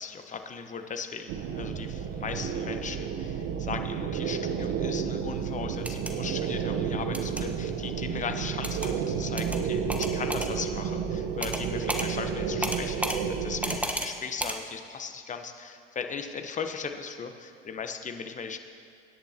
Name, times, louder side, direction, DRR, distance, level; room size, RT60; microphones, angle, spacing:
voice 1, 0.0-18.6, left 6 dB, 25° left, 7 dB, 1.1 m, -38 dB
sound 1, 1.3-13.8, right 7 dB, 50° right, 1.2 m, -31 dB
sound 2, 5.7-6.1 7.1-7.4 8.6-8.9 9.4-9.6 9.9-10.5 11.4-11.6 11.9-12.1 12.6-13.2 13.6-14.1 14.4-14.6, right 1 dB, 5° right, 1.2 m, -32 dB
25.5 x 10.5 x 2.9 m, 2.3 s
hypercardioid pair, 85°, 30 cm